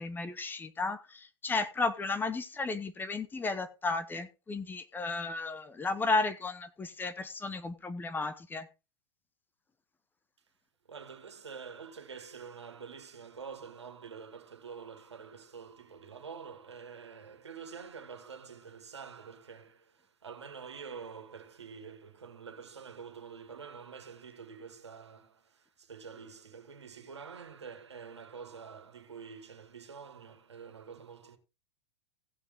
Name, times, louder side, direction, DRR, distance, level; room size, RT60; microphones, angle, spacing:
voice 1, 0.0-8.7, left 3 dB, 15° left, 1.1 m, -34 dB
voice 2, 10.9-31.4, right 6 dB, 75° right, 2.2 m, -47 dB
16.0 x 7.0 x 3.7 m
figure-of-eight pair, 95°, 14 cm